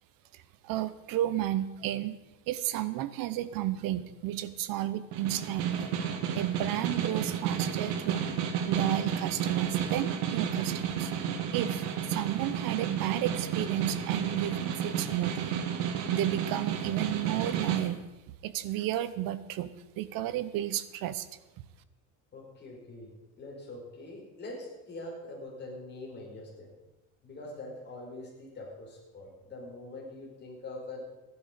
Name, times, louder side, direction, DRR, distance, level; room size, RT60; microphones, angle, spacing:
voice 1, 0.3-2.2 2.5-5.9 6.3-8.3 8.7-11.1 11.5-15.6 16.1-18.0 18.4-21.3, right 13 dB, 60° right, 13 dB, 1.0 m, -32 dB
Snare drum, 5.1-17.9, right 8 dB, 80° right, 1.8 m, -32 dB
voice 2, 22.3-23.1 23.4-26.7 27.2-31.0, left 2 dB, 25° left, -2 dB, 4.6 m, -43 dB
14.5 x 11.5 x 5.1 m, 1.0 s
cardioid pair, 155°, 39 cm